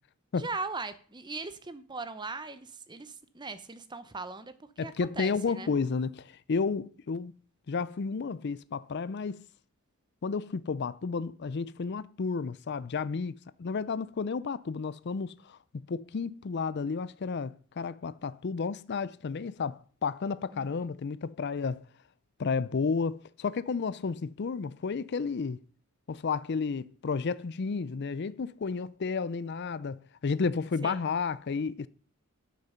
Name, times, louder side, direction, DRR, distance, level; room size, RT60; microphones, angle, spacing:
voice 1, 0.3-5.7 20.5-20.7 30.8-31.0, right 3 dB, 20° right, 0.8 m, -39 dB
voice 2, 4.8-7.3 7.7-9.4 10.2-15.6 15.9-21.8 22.4-25.6 26.1-31.9, left 5 dB, 50° left, 0.4 m, -32 dB
12.0 x 6.7 x 5.7 m
head